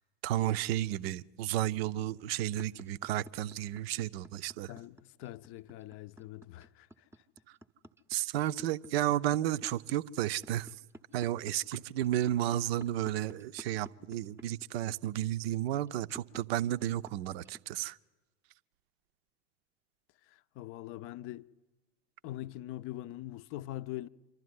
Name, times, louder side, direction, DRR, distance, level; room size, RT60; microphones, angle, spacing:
voice 1, 0.2-4.7 8.1-10.7 11.1-18.0, right 13 dB, 60° right, 0.6 m, -32 dB
sound 1, 2.2-17.8, right 1 dB, 5° right, 0.7 m, -51 dB
voice 2, 4.7-6.9 20.3-21.5 22.2-24.1, left 15 dB, 40° left, 0.6 m, -43 dB
26.5 x 12.0 x 9.6 m
hypercardioid pair, 85°, 35 cm